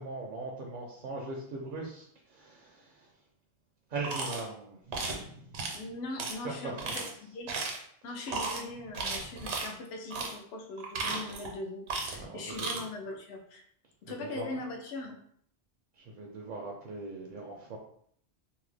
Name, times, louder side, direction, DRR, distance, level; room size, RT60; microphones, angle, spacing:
voice 1, 0.0-2.0 2.3-3.1 3.9-5.5 6.4-7.1 9.4-9.5 12.2-12.8 14.1-14.5 16.0-17.8, right 3 dB, 60° right, -1 dB, 0.6 m, -40 dB
sound 1, 4.0-4.4 4.9-5.2 5.5-5.8 6.2-6.3 6.8-7.1 7.5-7.8 8.3-8.6 8.9-9.7 10.1-10.3 10.8-11.5 11.9-12.2 12.5-12.8, right 3 dB, 80° right, 1.0 m, -34 dB
voice 2, 5.7-7.5 8.0-13.6 14.0-15.2, left 2 dB, 75° left, 2 dB, 0.8 m, -40 dB
2.7 x 2.0 x 3.2 m, 0.65 s
omnidirectional pair, 1.1 m